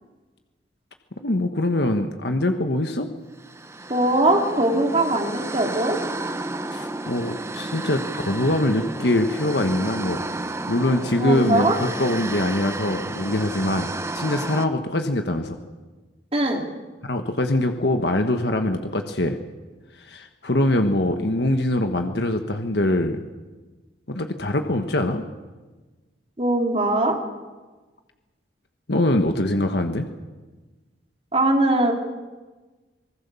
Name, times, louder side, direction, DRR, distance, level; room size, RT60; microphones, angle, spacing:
voice 1, 1.2-3.1 6.7-13.9 14.1-15.6 17.0-19.4 20.0-23.3 24.1-25.2 28.9-30.1, left 1 dB, 65° left, 6 dB, 1.4 m, -23 dB
sound 1, 3.4-14.7, right 2 dB, 15° right, 0.9 m, -32 dB
voice 2, 3.9-6.0 11.2-11.8 16.3-16.6 26.4-27.2 31.3-31.9, right 1 dB, 35° right, 2 dB, 3.3 m, -21 dB
26.0 x 19.5 x 7.1 m, 1.3 s
head